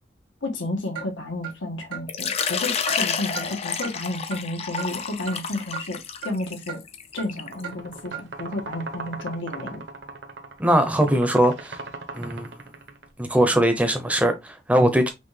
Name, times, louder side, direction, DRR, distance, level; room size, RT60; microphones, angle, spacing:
voice 1, 0.4-6.0 6.2-6.8 7.1-9.8, left 2 dB, 85° left, 1.2 m, -31 dB
Clock, 1.0-1.1 1.4-1.5 1.9-2.0 2.4-2.5 2.9-3.0 3.3-3.5 3.8-3.9 4.3-4.4 4.8-4.9 5.3-5.4 5.7-5.8 6.2-6.3 6.7-6.8 7.2-7.3 7.6-7.8 8.1-8.2, right 8 dB, 85° right, 1.8 m, -35 dB
Water / Liquid, 2.1-7.6, left 6 dB, 35° left, 0.5 m, -29 dB
sound 1, 7.3-13.1, right 3 dB, 65° right, 1.0 m, -38 dB
voice 2, 10.6-11.8 12.1-12.5 13.2-15.1, right 1 dB, 5° right, 0.7 m, -20 dB
5.8 x 2.4 x 3.3 m
head